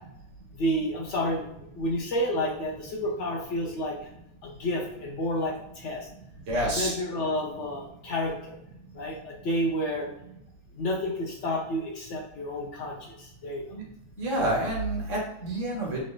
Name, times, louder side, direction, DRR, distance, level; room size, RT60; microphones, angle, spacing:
voice 1, 0.5-1.5 1.7-4.0 4.4-6.1 6.6-8.6 8.9-10.1 10.8-13.7, equal, 65° left, 0 dB, 0.8 m, -30 dB
voice 2, 6.5-7.0 13.7-13.8 14.2-16.0, right 1 dB, 60° right, -2 dB, 1.4 m, -28 dB
4.2 x 3.1 x 2.3 m, 0.81 s
omnidirectional pair, 1.5 m